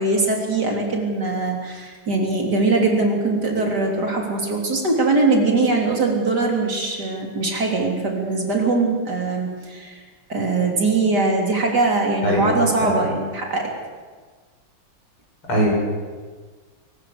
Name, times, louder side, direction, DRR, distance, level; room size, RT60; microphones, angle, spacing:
voice 1, 0.0-10.0 10.3-13.7, right 3 dB, 50° right, 0 dB, 4.0 m, -21 dB
voice 2, 12.2-12.5 12.8-13.0 15.5-15.7, right 1 dB, 85° left, -3 dB, 8.5 m, -20 dB
22.0 x 19.5 x 6.8 m, 1.5 s
omnidirectional pair, 2.3 m